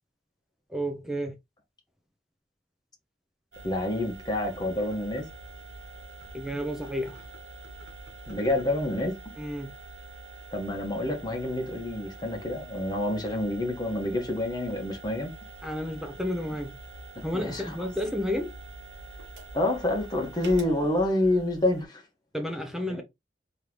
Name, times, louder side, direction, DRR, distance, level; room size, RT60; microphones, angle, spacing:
voice 1, 0.7-1.3 6.3-7.2 9.4-9.7 15.6-16.8 17.2-18.5 22.3-23.0, equal, ahead, 0.6 m, -31 dB
sound 1, 3.5-21.8, right 2 dB, 75° right, 1.2 m, -45 dB
voice 2, 3.6-5.3 8.3-9.2 10.5-15.3 17.1-17.8 19.5-22.0 22.9-23.0, left 1 dB, 25° left, 1.4 m, -28 dB
3.8 x 3.2 x 3.1 m
head